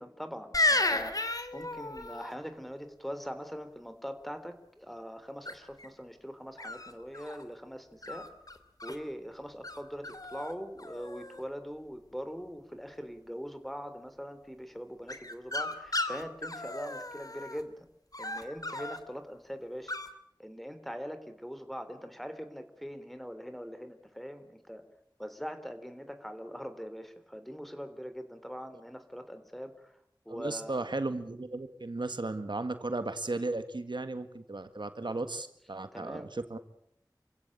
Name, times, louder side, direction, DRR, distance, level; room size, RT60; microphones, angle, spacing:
voice 1, 0.0-8.3 8.8-17.9 18.2-19.9 20.4-24.8 25.2-30.0 30.3-30.8 35.9-36.3, equal, ahead, 9 dB, 3.4 m, -42 dB
sound 1, 0.5-2.3 5.5-5.9 6.6-7.4 8.0-9.0 9.6-9.8 10.0-10.5 10.8-11.4 15.1-17.6 18.1-19.0 19.9-20.1, left 2 dB, 50° left, 2.6 m, -33 dB
voice 2, 30.3-36.6, right 2 dB, 80° right, 10 dB, 1.7 m, -35 dB
28.5 x 16.0 x 8.7 m, 0.73 s
wide cardioid pair, 50°, 8 cm